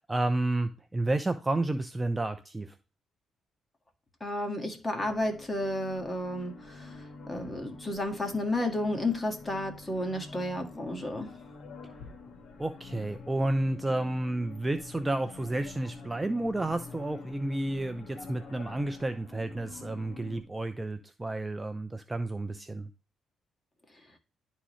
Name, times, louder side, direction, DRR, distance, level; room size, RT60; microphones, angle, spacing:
voice 1, 0.0-2.7 12.6-22.9, right 2 dB, 15° right, 0.6 m, -31 dB
voice 2, 4.2-11.4, left 1 dB, 20° left, 1.8 m, -32 dB
sound 1, 5.0-20.4, left 4 dB, 65° left, 1.5 m, -47 dB
11.0 x 3.8 x 3.1 m
cardioid pair, 90°, 0 cm